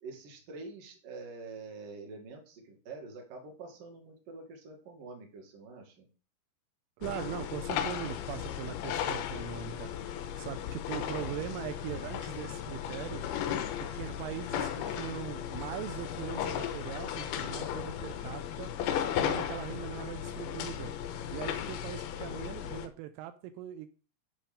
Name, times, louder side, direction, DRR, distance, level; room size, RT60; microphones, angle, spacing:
voice 1, 0.0-6.1, right 3 dB, 50° right, 1 dB, 3.3 m, -46 dB
sound 1, 7.0-22.9, left 9 dB, 90° left, 2.2 m, -36 dB
voice 2, 7.0-9.9 10.4-13.2 13.8-18.7 19.2-20.9 21.3-23.9, right 12 dB, 85° right, 9 dB, 3.2 m, -41 dB
10.5 x 5.4 x 5.1 m, 0.37 s
omnidirectional pair, 5.7 m